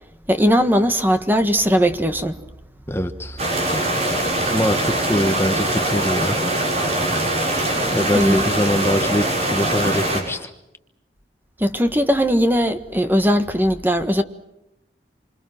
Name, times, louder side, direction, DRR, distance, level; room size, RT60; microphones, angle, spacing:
voice 1, 0.3-2.4 8.1-8.4 11.6-14.2, equal, 10° right, 1.6 m, -19 dB
voice 2, 2.9-3.4 4.4-6.4 7.9-10.5, left 1 dB, 15° left, 1.3 m, -23 dB
sound 1, 3.4-10.2, right 1 dB, 40° right, 6.9 m, -22 dB
28.0 x 26.5 x 6.0 m
head